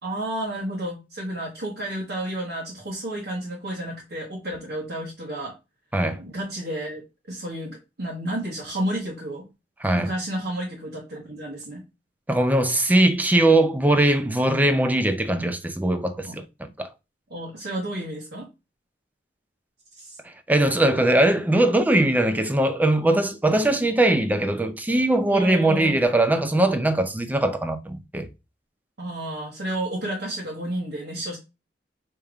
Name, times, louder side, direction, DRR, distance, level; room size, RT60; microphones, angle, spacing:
voice 1, 0.0-5.5 6.2-7.0 7.3-9.4 9.9-11.9 16.2-16.4 17.3-18.5 20.0-20.2 25.3-26.0 29.0-31.4, right 1 dB, 60° right, 1.2 m, -31 dB
voice 2, 9.8-10.1 12.3-16.9 20.2-28.3, right 1 dB, 10° right, 0.4 m, -21 dB
5.0 x 3.0 x 2.4 m
head